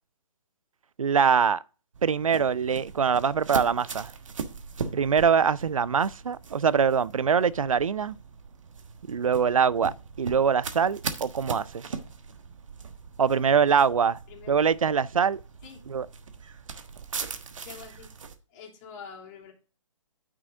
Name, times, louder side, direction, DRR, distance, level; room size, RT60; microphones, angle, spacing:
voice 1, 1.0-1.6 2.0-4.1 4.9-8.2 9.1-11.9 13.2-14.2 14.5-15.4 15.9-16.1, right 6 dB, 90° right, 0.5 m, -23 dB
sound 1, 1.9-18.3, right 5 dB, 75° right, 1.3 m, -39 dB
voice 2, 14.3-14.6 15.6-15.8 17.6-18.1 18.5-19.5, left 6 dB, 35° left, 2.9 m, -45 dB
9.1 x 6.3 x 3.5 m
hypercardioid pair, 140°, 17 cm